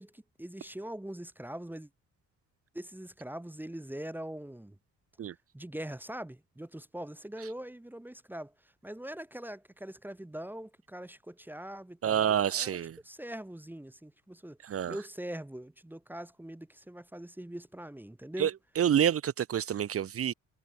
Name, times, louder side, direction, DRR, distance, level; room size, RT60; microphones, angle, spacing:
voice 1, 0.0-1.9 2.7-4.7 5.5-8.5 8.8-12.8 13.0-14.6 14.9-18.5, right 1 dB, 5° right, 1.5 m, -42 dB
voice 2, 12.0-13.0 14.6-15.0 18.4-18.5 18.8-20.3, right 9 dB, 50° right, 1.0 m, -28 dB
cardioid pair, 90°, 30 cm